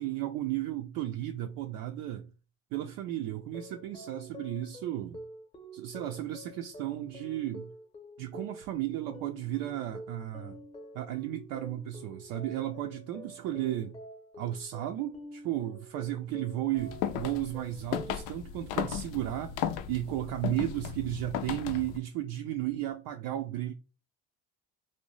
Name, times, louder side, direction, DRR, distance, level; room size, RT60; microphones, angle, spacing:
voice 1, 0.0-2.3 2.7-5.2 5.7-7.7 8.2-10.6 10.9-14.0 14.4-23.7, right 13 dB, 60° right, 0.5 m, -34 dB
sound 1, 3.4-18.3, equal, 15° left, 0.7 m, -48 dB
sound 2, 16.8-22.0, left 9 dB, 75° left, 0.5 m, -36 dB
2.7 x 2.2 x 3.1 m
supercardioid pair, 90°, 37 cm